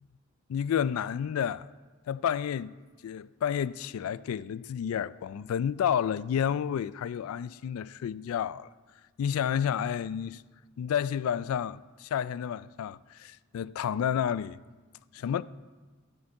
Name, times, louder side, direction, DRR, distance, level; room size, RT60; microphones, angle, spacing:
voice 1, 0.5-1.7 2.1-2.7 3.0-8.7 9.2-10.4 10.8-14.6 15.1-15.4, left 8 dB, 85° left, 0.3 m, -30 dB
13.5 x 5.2 x 8.2 m
head